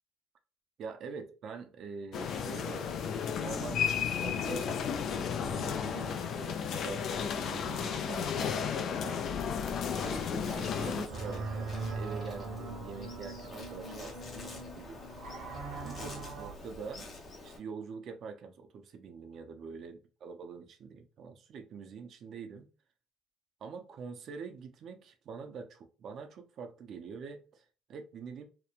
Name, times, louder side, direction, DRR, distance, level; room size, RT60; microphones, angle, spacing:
voice 1, 0.8-2.9 3.4-4.7 5.0-15.0 15.8-17.1 17.4-22.7 23.6-28.4, right 5 dB, 50° right, 0.4 m, -45 dB
sound 1, 2.1-11.1, left 7 dB, 55° left, 0.4 m, -33 dB
Insect, 10.0-17.6, left 2 dB, 35° left, 0.9 m, -47 dB
sound 2, 11.1-16.5, right 3 dB, 75° right, 0.9 m, -40 dB
2.9 x 2.1 x 2.4 m
cardioid pair, 120°, 0 cm